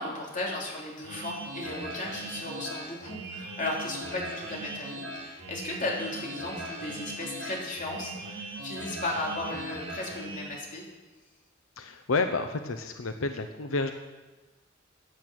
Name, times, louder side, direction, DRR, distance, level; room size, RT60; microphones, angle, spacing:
voice 1, 0.0-10.8, left 2 dB, 40° left, -2 dB, 3.2 m, -35 dB
sound 1, 1.0-10.5, right 1 dB, 85° right, 4.6 m, -39 dB
voice 2, 11.8-13.9, left 3 dB, 90° left, 7 dB, 0.8 m, -30 dB
15.0 x 8.8 x 6.2 m, 1.2 s
head